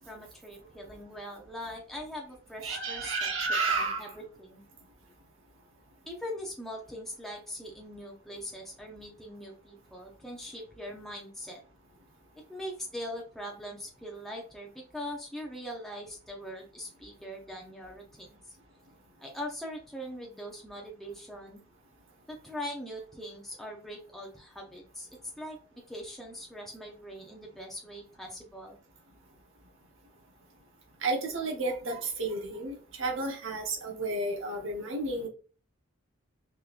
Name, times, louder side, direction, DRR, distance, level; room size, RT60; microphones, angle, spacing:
voice 1, 0.1-3.1 3.7-4.6 6.1-11.6 12.5-18.6 19.2-21.6 22.3-25.1 25.4-28.8, equal, ahead, 0.6 m, -41 dB
voice 2, 2.6-4.1 31.0-35.3, right 3 dB, 70° right, 0.9 m, -31 dB
3.5 x 3.0 x 2.4 m
head